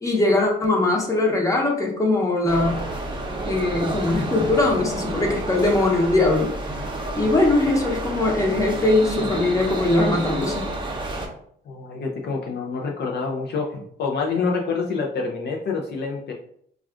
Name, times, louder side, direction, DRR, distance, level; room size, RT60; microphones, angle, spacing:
voice 1, 0.0-2.8 3.5-6.5 7.1-10.7, left 2 dB, 15° left, 0 dB, 0.8 m, -21 dB
sound 1, 2.5-11.3, right 2 dB, 25° right, 0.7 m, -30 dB
voice 2, 11.7-16.3, left 4 dB, 60° left, 0 dB, 0.5 m, -27 dB
2.3 x 2.3 x 3.5 m, 0.66 s
cardioid pair, 90°, 20 cm